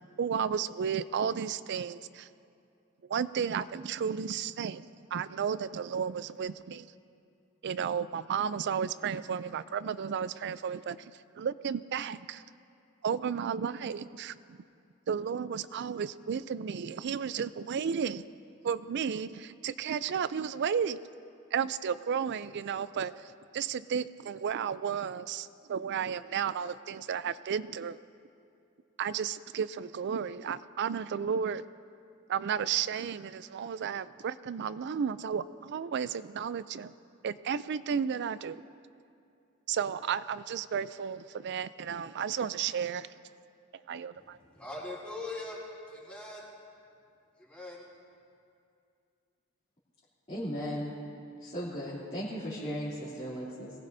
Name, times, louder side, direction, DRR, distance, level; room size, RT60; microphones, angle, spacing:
voice 1, 0.2-2.3 3.1-6.9 7.6-11.1 11.4-12.4 13.0-14.6 15.1-18.3 18.6-21.0 21.5-28.0 29.0-31.6 32.3-36.9 37.2-38.6 39.7-43.1 43.9-44.4, right 7 dB, 55° right, 16 dB, 0.4 m, -33 dB
voice 2, 44.5-45.6 45.9-46.5 47.4-47.9, left 2 dB, 5° left, -6 dB, 3.5 m, -41 dB
voice 3, 50.3-50.9 51.4-53.7, equal, 30° left, -10 dB, 3.0 m, -36 dB
22.5 x 18.5 x 2.7 m, 2.5 s
head